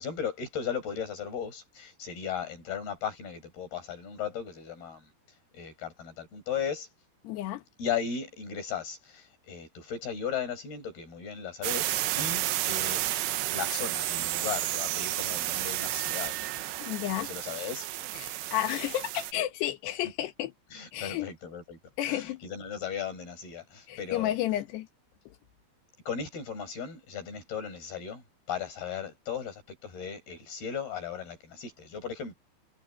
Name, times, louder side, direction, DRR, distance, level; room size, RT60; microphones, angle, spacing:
voice 1, 0.0-5.1 5.5-6.9 7.8-13.0 13.5-16.4 17.2-17.9 20.7-21.8 22.1-24.3 26.1-28.2 28.5-32.3, left 7 dB, 70° left, 7.7 m, -36 dB
voice 2, 7.3-7.6 16.8-17.3 18.2-20.5 20.9-21.3 22.0-22.4 23.9-24.9, left 13 dB, 85° left, 3.4 m, -31 dB
sound 1, 11.6-19.3, right 14 dB, 90° right, 3.3 m, -31 dB
omnidirectional pair, 4.7 m